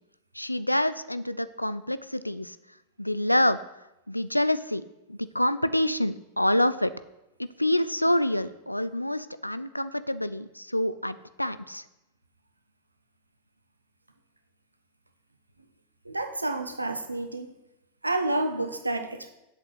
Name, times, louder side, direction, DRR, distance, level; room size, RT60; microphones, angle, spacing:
voice 1, 0.3-2.6 3.0-3.6 4.1-4.8 5.1-6.9 7.6-11.8, left 1 dB, 90° left, 14 dB, 0.4 m, -27 dB
voice 2, 16.0-17.5 18.0-19.3, right 2 dB, 85° right, 7 dB, 1.0 m, -29 dB
8.1 x 6.5 x 7.9 m, 0.93 s
figure-of-eight pair, 90°, 0 cm